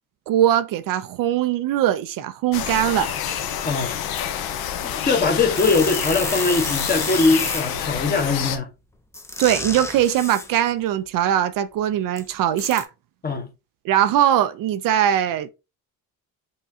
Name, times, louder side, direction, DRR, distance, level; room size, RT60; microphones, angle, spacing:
voice 1, 0.3-3.2 9.4-12.9 13.9-15.5, right 11 dB, 60° right, 0.5 m, -21 dB
sound 1, 2.5-8.6, left 9 dB, 70° left, 0.7 m, -28 dB
voice 2, 3.6-4.0 5.1-8.7 13.2-13.5, left 3 dB, 25° left, 0.9 m, -21 dB
sound 2, 5.5-7.9 9.1-10.6 12.2-12.3 12.6-12.8, left 2 dB, 5° left, 0.5 m, -31 dB
5.5 x 2.3 x 2.7 m
supercardioid pair, 85°, 38 cm